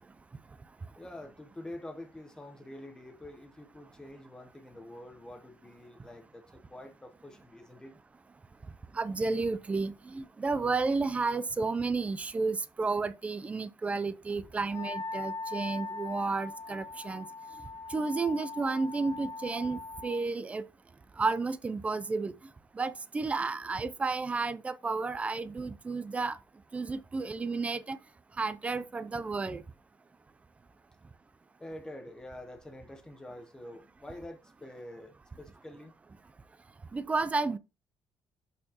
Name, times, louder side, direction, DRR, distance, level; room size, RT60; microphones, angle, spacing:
voice 1, 1.0-8.0 31.6-35.9, left 1 dB, 10° left, 0.8 m, -46 dB
voice 2, 8.9-17.3 17.9-20.6 21.2-22.3 22.7-26.4 26.7-28.0 28.4-29.6 36.9-37.6, right 4 dB, 15° right, 0.4 m, -32 dB
Wind instrument woodwind instrument, 14.7-20.2, left 3 dB, 25° left, 1.6 m, -40 dB
11.5 x 4.4 x 2.9 m
cardioid pair, 180°, 9 cm